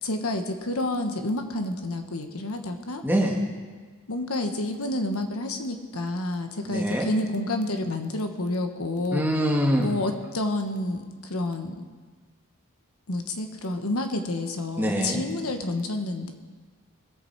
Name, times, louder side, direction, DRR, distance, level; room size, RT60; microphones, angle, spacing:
voice 1, 0.0-3.0 4.1-9.2 9.6-11.8 13.1-16.3, left 2 dB, 70° left, 5 dB, 1.2 m, -29 dB
voice 2, 3.0-3.4 6.6-7.1 9.1-9.9 14.8-15.2, equal, 10° right, -1 dB, 1.6 m, -24 dB
20.5 x 8.2 x 4.6 m, 1.5 s
head